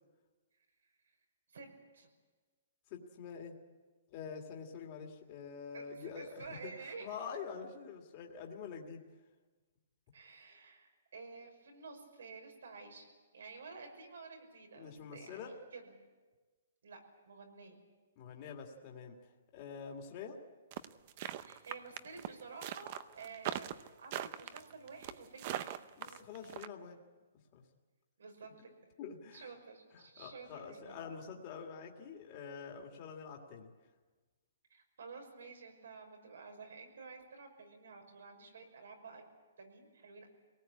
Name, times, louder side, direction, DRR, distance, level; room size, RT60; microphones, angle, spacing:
voice 1, 2.9-3.6 4.1-9.0 14.8-15.5 18.2-19.2 19.5-20.4 26.0-27.0 27.5-27.6 29.0-29.5 30.2-33.7, left 6 dB, 30° left, 1 dB, 2.1 m, -46 dB
voice 2, 5.7-7.2 10.1-13.1 13.3-15.9 16.8-17.0 17.2-17.8 21.4-23.7 24.0-25.8 28.2-28.7 29.3-31.0 34.7-39.2 39.6-40.3, right 4 dB, 85° right, 3 dB, 5.8 m, -51 dB
sound 1, 20.7-26.7, right 12 dB, 30° right, 0.7 m, -40 dB
24.0 x 18.5 x 8.6 m, 1.3 s
hypercardioid pair, 170°, 0 cm